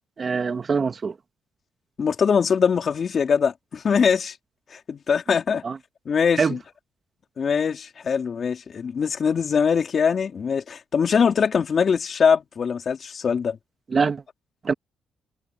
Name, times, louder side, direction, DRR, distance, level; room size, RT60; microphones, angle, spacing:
voice 1, 0.2-1.1 5.6-5.8 6.4-6.6 13.9-14.2 14.6-14.7, right 5 dB, 40° right, 1.9 m, -23 dB
voice 2, 2.0-4.4 4.7-5.6 6.1-6.6 7.4-13.6, left 6 dB, 50° left, 4.2 m, -22 dB
cardioid pair, 90°, 0 cm